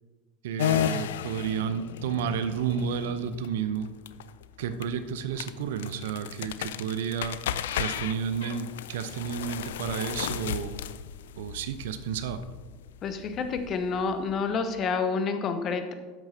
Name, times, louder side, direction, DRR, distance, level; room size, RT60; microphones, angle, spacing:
voice 1, 0.4-3.9 4.6-7.4 7.7-10.8 11.4-12.4, right 7 dB, 65° right, 11 dB, 0.6 m, -31 dB
sound 1, 0.6-14.8, left 10 dB, 70° left, 0.4 m, -35 dB
voice 2, 13.0-15.9, left 5 dB, 40° left, 8 dB, 1.1 m, -29 dB
12.5 x 8.8 x 2.8 m, 1.3 s
figure-of-eight pair, 80°, 0 cm